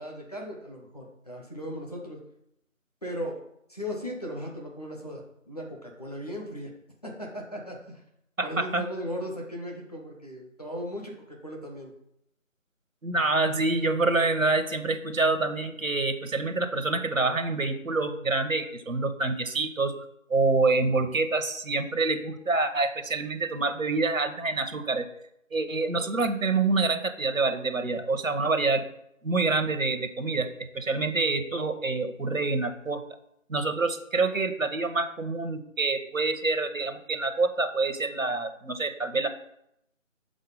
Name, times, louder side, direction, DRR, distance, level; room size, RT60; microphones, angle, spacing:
voice 1, 0.0-2.2 3.0-3.3 3.7-6.7 7.0-8.0 8.4-11.9, equal, 30° left, -2 dB, 1.0 m, -37 dB
voice 2, 8.4-8.8 13.0-19.9 20.3-25.1 25.5-28.8 29.2-30.5 30.7-33.0 33.5-39.3, right 3 dB, 85° right, 9 dB, 0.9 m, -26 dB
6.5 x 3.9 x 5.2 m, 0.78 s
figure-of-eight pair, 165°, 40 cm